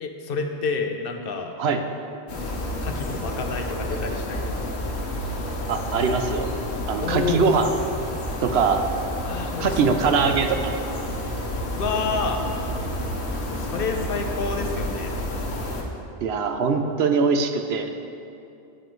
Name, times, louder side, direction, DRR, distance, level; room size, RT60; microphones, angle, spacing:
voice 1, 0.0-1.5 2.8-4.7 7.0-7.4 9.2-9.8 11.8-12.4 13.6-15.1 16.7-17.0, left 4 dB, 65° left, 5 dB, 0.9 m, -29 dB
sound 1, 2.3-15.8, left 1 dB, 80° left, 1.3 m, -30 dB
voice 2, 5.7-6.5 6.9-7.7 8.4-8.9 9.6-10.7 16.2-17.9, right 5 dB, 80° right, 6 dB, 0.9 m, -22 dB
9.2 x 9.0 x 3.1 m, 2.6 s
omnidirectional pair, 1.1 m